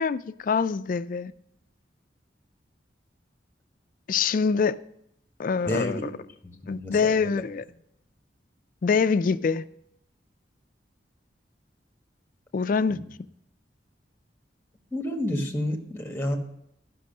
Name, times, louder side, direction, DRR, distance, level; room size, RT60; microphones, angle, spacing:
voice 1, 0.0-1.3 4.1-4.8 5.4-6.1 6.7-7.6 8.8-9.7 12.5-13.0, left 5 dB, 50° left, 0.3 m, -24 dB
voice 2, 5.7-6.1 6.4-7.3 12.9-13.0 14.9-16.4, left 1 dB, 15° left, 1.3 m, -30 dB
12.5 x 6.1 x 6.5 m
head